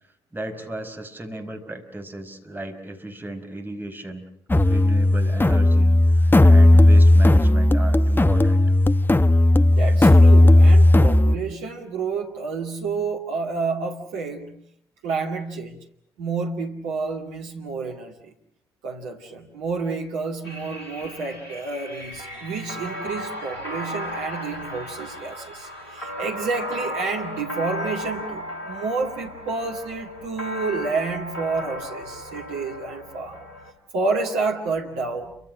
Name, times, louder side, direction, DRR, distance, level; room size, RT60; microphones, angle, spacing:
voice 1, 0.3-4.2 4.6-8.6, right 1 dB, 15° right, 4 dB, 5.1 m, -35 dB
sound 1, 4.5-11.4, left 1 dB, 15° left, 1.0 m, -15 dB
voice 2, 9.7-14.6 15.0-15.8 16.2-18.3 18.8-33.4 33.9-35.4, right 4 dB, 65° right, 1 dB, 2.2 m, -29 dB
sound 2, 20.4-33.7, equal, 80° left, 2.2 m, -35 dB
29.0 x 25.5 x 6.5 m, 0.68 s
figure-of-eight pair, 40°, 13 cm